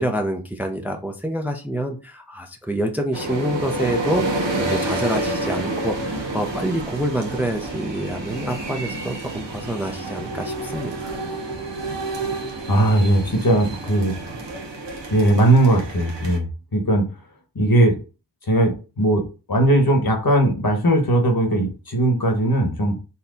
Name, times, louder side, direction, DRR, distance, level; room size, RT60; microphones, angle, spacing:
voice 1, 0.0-11.2, right 1 dB, 5° right, 4 dB, 0.5 m, -27 dB
sound 1, 3.1-16.4, right 2 dB, 85° right, 1.0 m, -29 dB
voice 2, 12.7-14.1 15.1-17.1 17.5-18.0 18.5-19.2 19.5-23.0, right 1 dB, 55° left, 3 dB, 1.3 m, -18 dB
4.3 x 2.2 x 3.8 m, 0.32 s
wide cardioid pair, 50°, 42 cm